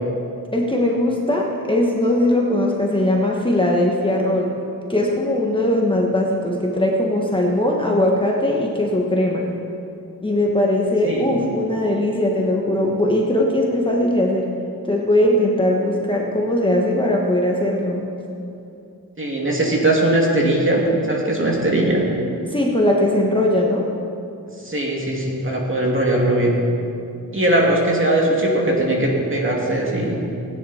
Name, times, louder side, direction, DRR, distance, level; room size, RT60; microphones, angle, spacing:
voice 1, 0.5-4.6 4.9-9.5 10.2-14.5 14.8-18.1 22.5-23.9, left 1 dB, 15° left, -2 dB, 1.4 m, -20 dB
voice 2, 19.2-20.8 21.1-22.0 24.6-26.5 27.3-30.2, right 1 dB, 35° right, -3 dB, 2.7 m, -19 dB
16.5 x 9.6 x 4.4 m, 2.6 s
wide cardioid pair, 90°, 35 cm